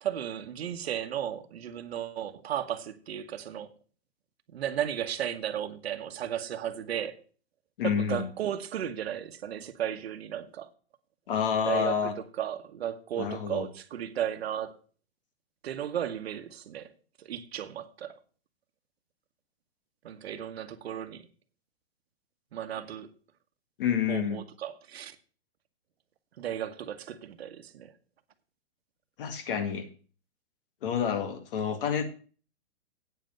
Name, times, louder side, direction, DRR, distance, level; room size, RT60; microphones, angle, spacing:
voice 1, 0.0-3.7 4.5-7.2 7.8-10.7 11.6-12.1 12.4-14.8 15.6-16.9 17.2-18.1 20.0-21.3 22.5-23.1 24.1-25.2 26.4-27.9, right 10 dB, 70° right, 1.4 m, -35 dB
voice 2, 7.8-8.3 11.3-12.1 13.2-13.7 23.8-24.4 29.2-29.9 30.8-32.0, left 7 dB, 55° left, 2.1 m, -28 dB
8.9 x 7.9 x 6.6 m
hypercardioid pair, 155°, 33 cm